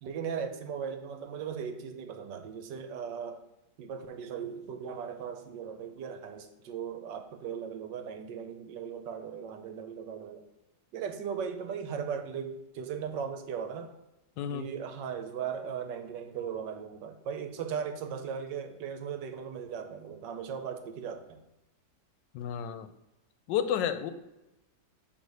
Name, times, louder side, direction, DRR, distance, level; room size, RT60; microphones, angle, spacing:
voice 1, 0.0-3.4 3.8-10.4 10.9-13.9 14.5-21.4, right 7 dB, 80° right, 7 dB, 1.3 m, -38 dB
voice 2, 14.4-14.7 22.3-22.9 23.5-24.1, left 9 dB, 80° left, 10 dB, 1.2 m, -31 dB
6.3 x 3.2 x 5.3 m, 0.96 s
omnidirectional pair, 1.9 m